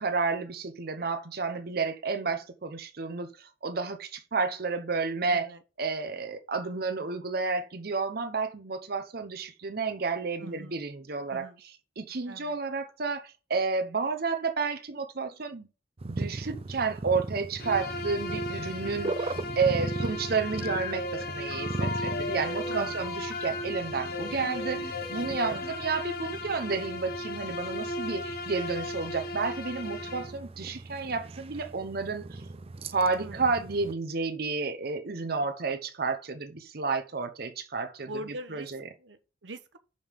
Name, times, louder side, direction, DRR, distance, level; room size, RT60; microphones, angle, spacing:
voice 1, 0.0-5.5 5.8-15.7 16.0-32.4 32.9-38.1 38.5-38.8, right 4 dB, 55° right, 0.9 m, -31 dB
voice 2, 5.3-5.6 10.4-10.8 11.3-11.6 12.3-12.6 20.0-20.2 22.7-23.0 25.5-25.7 33.2-33.4 38.0-38.7 39.0-39.8, right 1 dB, 90° right, 1.0 m, -42 dB
sound 1, 16.0-33.9, right 2 dB, 35° right, 0.5 m, -39 dB
Bowed string instrument, 17.6-30.4, left 1 dB, 60° left, 1.0 m, -36 dB
sound 2, 20.6-23.6 24.1-25.7, left 3 dB, 85° left, 2.1 m, -38 dB
5.5 x 5.4 x 6.5 m
head